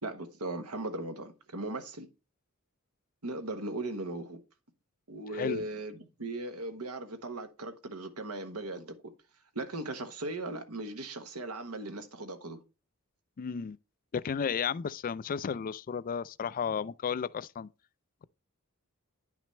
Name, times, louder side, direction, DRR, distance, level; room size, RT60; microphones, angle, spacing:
voice 1, 0.0-2.1 3.2-4.4 5.1-8.9 9.5-12.6, right 2 dB, 80° right, 1.3 m, -38 dB
voice 2, 5.3-5.7 13.4-13.8 14.1-17.7, left 6 dB, 40° left, 0.4 m, -33 dB
9.9 x 6.0 x 3.2 m
head